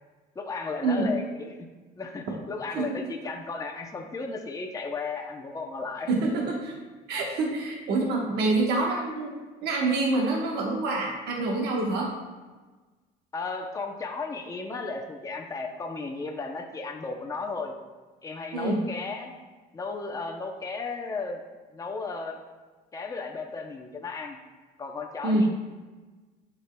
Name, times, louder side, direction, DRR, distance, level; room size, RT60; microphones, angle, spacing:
voice 1, 0.4-1.7 2.0-6.1 13.3-17.7 18.2-19.3 19.7-21.4 21.7-22.4 22.9-24.4 24.8-25.5, left 4 dB, 20° left, 2 dB, 0.6 m, -34 dB
voice 2, 2.7-3.1 6.1-6.7 7.1-9.3 9.6-12.1 18.5-18.8 25.2-25.5, right 2 dB, 75° right, -1 dB, 1.1 m, -26 dB
8.1 x 6.1 x 2.2 m, 1.3 s
cardioid pair, 110°, 17 cm